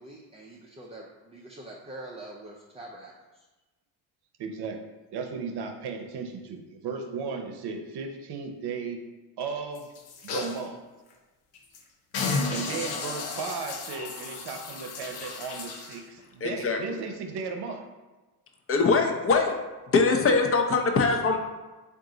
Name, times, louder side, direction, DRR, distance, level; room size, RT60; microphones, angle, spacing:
voice 1, 0.0-3.5, right 1 dB, 15° right, -2 dB, 0.5 m, -44 dB
voice 2, 4.4-4.8 5.1-9.0 9.4-9.9 10.2-10.8 12.5-17.9, right 5 dB, 60° right, 5 dB, 0.7 m, -35 dB
sound 1, 9.7-10.6 11.1-11.2 11.5-11.8 12.1-16.0 16.6-16.7, left 4 dB, 85° left, 0.7 m, -33 dB
voice 3, 16.4-17.0 18.7-19.5 19.9-21.4, left 4 dB, 30° left, 3 dB, 0.6 m, -23 dB
3.7 x 2.6 x 3.7 m, 1.2 s
supercardioid pair, 70°, 44 cm